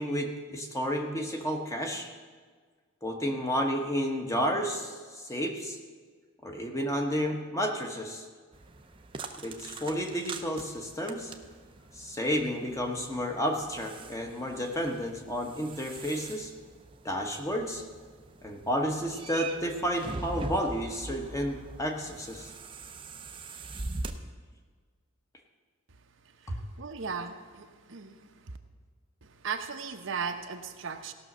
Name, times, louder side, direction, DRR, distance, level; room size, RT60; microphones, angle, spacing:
voice 1, 0.0-2.1 3.0-5.8 6.4-8.2 9.4-11.3 11.9-16.5 17.0-17.8 18.4-22.5 26.5-26.6, equal, 15° left, 2 dB, 1.0 m, -31 dB
sound 1, 8.5-24.1, right 3 dB, 25° right, 0.6 m, -43 dB
voice 2, 26.4-28.6 29.2-31.1, right 6 dB, 65° right, 6 dB, 0.8 m, -37 dB
17.0 x 6.3 x 6.1 m, 1.5 s
head